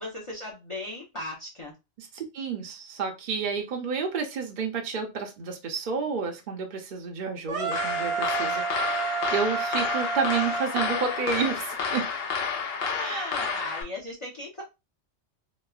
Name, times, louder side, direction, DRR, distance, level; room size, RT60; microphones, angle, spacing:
voice 1, 0.0-1.7 12.8-14.6, left 1 dB, 35° left, 0.6 m, -37 dB
voice 2, 2.0-12.1 13.0-13.4, right 5 dB, 55° right, 0.6 m, -30 dB
sound 1, 7.5-11.6, right 5 dB, 75° right, 0.9 m, -31 dB
sound 2, 7.7-13.8, left 6 dB, 65° left, 0.8 m, -30 dB
3.0 x 2.1 x 2.3 m
omnidirectional pair, 1.1 m